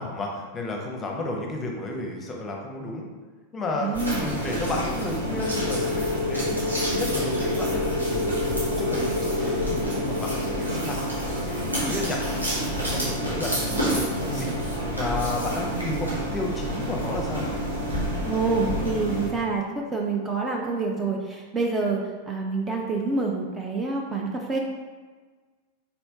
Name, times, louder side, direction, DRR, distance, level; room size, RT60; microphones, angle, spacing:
voice 1, 0.0-3.1 3.5-6.6 6.9-12.2 12.5-14.5 14.9-17.5, left 2 dB, 20° left, 0 dB, 0.8 m, -32 dB
voice 2, 3.8-4.2 11.7-12.0 18.2-19.6 19.9-22.0 22.3-24.6, right 4 dB, 15° right, 0 dB, 0.5 m, -27 dB
sound 1, 3.9-19.3, equal, 90° right, 1.3 m, -29 dB
sound 2, 5.4-13.8, left 3 dB, 85° left, 0.3 m, -30 dB
4.4 x 4.3 x 2.8 m, 1.4 s
figure-of-eight pair, 90°, 0 cm